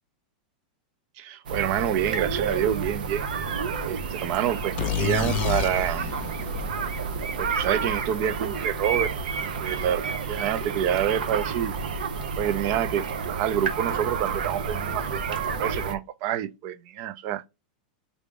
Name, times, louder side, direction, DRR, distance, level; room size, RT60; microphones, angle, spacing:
voice 1, 1.2-3.3 3.9-6.1 7.4-9.1 9.4-11.7 12.4-17.4, right 10 dB, 45° right, 0.4 m, -27 dB
sound 1, 1.5-16.0, right 5 dB, 85° right, 0.6 m, -30 dB
sound 2, 4.8-8.5, left 10 dB, 35° left, 0.4 m, -31 dB
3.5 x 2.6 x 3.2 m
supercardioid pair, 140°, 5 cm